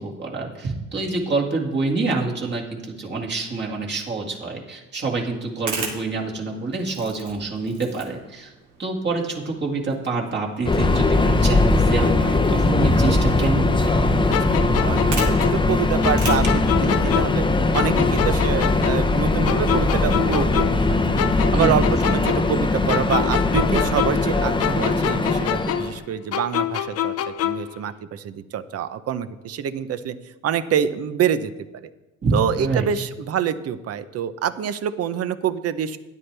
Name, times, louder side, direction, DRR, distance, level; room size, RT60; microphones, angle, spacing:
voice 1, 0.0-8.5 8.8-14.0 21.5-21.8 32.2-32.8, right 3 dB, 35° right, -1 dB, 2.1 m, -26 dB
sound 1, 5.4-21.2, right 4 dB, 70° right, 2.2 m, -40 dB
Subway metro underground, 10.6-26.0, left 2 dB, 15° left, 0.7 m, -20 dB
sound 2, 14.3-17.5 17.7-20.9 21.2-24.3 24.6-27.7, left 11 dB, 50° left, 0.6 m, -26 dB
voice 2, 14.8-17.5 17.7-20.6 20.9-21.2 21.5-27.1 27.4-30.1 30.4-31.5 32.3-36.0, right 9 dB, 50° right, 13 dB, 0.7 m, -26 dB
12.0 x 10.5 x 3.4 m, 1.1 s
cardioid pair, 115°, 31 cm